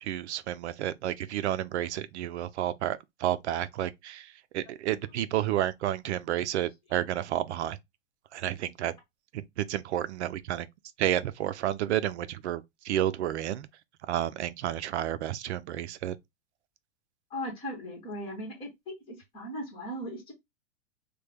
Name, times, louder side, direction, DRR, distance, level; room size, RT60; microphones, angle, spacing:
voice 1, 0.0-4.3 4.5-7.8 8.3-8.9 9.3-10.7 11.0-13.7 14.1-16.2, right 12 dB, 70° right, 0.5 m, -31 dB
voice 2, 17.3-20.3, equal, 15° left, 1.1 m, -38 dB
3.2 x 2.2 x 3.4 m
supercardioid pair, 170°, 36 cm